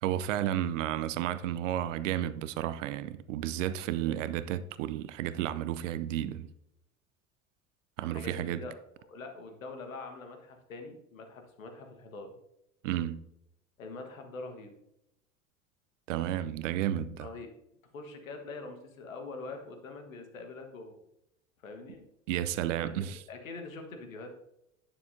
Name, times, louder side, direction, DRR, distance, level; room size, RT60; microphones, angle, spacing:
voice 1, 0.0-6.5 8.0-8.6 12.8-13.2 16.1-17.3 22.3-23.2, right 12 dB, 70° right, 0.7 m, -32 dB
voice 2, 8.0-8.7 9.1-12.3 13.8-14.7 17.2-17.5 17.9-21.0 21.6-22.0 22.8-24.3, left 3 dB, 85° left, 1.5 m, -44 dB
9.6 x 6.7 x 2.7 m
hypercardioid pair, 85°, 40 cm